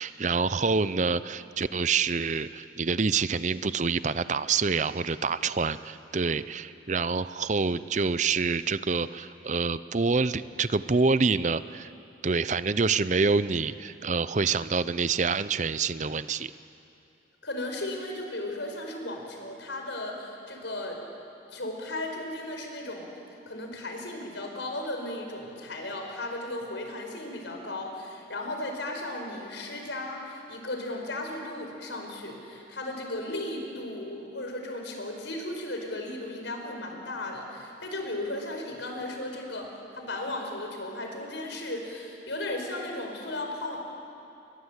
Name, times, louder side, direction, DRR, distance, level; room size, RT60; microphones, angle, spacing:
voice 1, 0.0-11.9 12.2-16.5, right 4 dB, 40° right, 15 dB, 0.6 m, -27 dB
voice 2, 17.4-21.0 21.5-23.1 23.5-43.8, left 1 dB, 80° left, 3 dB, 5.0 m, -35 dB
29.5 x 22.5 x 8.3 m, 2.7 s
head